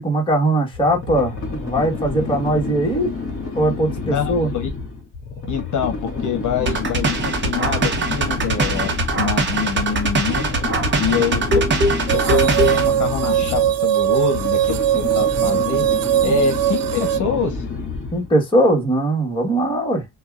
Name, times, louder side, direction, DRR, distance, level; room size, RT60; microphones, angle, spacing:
voice 1, 0.0-3.1 3.5-4.5 16.2-16.4 18.1-20.1, right 1 dB, 15° left, 1.5 m, -20 dB
sound 1, 0.7-18.3, left 4 dB, 35° left, 2.8 m, -29 dB
voice 2, 4.0-4.7 5.5-8.9 9.2-10.5 11.0-11.6 12.1-15.8 16.2-17.6, left 6 dB, 55° left, 1.0 m, -25 dB
sound 2, 6.7-12.9, right 2 dB, 30° right, 1.0 m, -21 dB
sound 3, 12.1-17.2, right 12 dB, 70° right, 0.5 m, -20 dB
6.6 x 2.4 x 2.4 m
cardioid pair, 160°, 35 cm